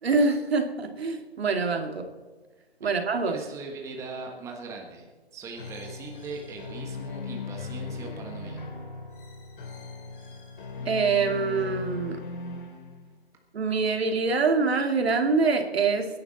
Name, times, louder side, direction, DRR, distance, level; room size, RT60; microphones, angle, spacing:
voice 1, 0.0-2.1 2.8-3.4 10.9-12.2 13.5-16.1, right 4 dB, 70° right, 5 dB, 2.6 m, -25 dB
voice 2, 3.2-8.7, right 4 dB, 10° right, 1 dB, 1.4 m, -40 dB
sound 1, 5.6-13.2, left 3 dB, 50° left, 3.3 m, -38 dB
23.5 x 10.5 x 4.1 m, 1.4 s
hypercardioid pair, 150°, 32 cm